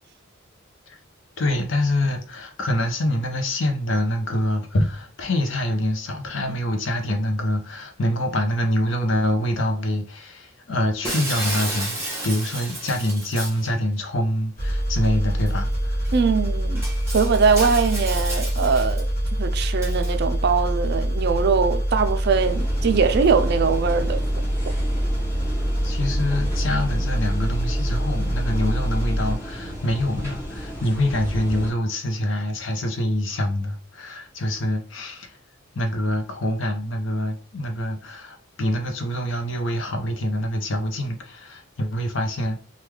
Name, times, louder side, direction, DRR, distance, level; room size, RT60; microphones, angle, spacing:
voice 1, 1.4-16.1 25.8-35.4 35.7-42.6, left 1 dB, 65° left, 0.6 m, -25 dB
Shatter, 11.0-13.7 15.5-15.6 16.0-16.2 16.8-19.0 19.8-20.1, right 1 dB, 15° right, 1.2 m, -32 dB
sound 1, 14.6-29.3, equal, 45° left, 1.2 m, -25 dB
voice 2, 16.1-16.8 17.1-24.2, right 5 dB, 55° right, 0.4 m, -22 dB
sound 2, 22.4-31.7, equal, 15° left, 1.4 m, -34 dB
3.4 x 2.3 x 3.1 m
head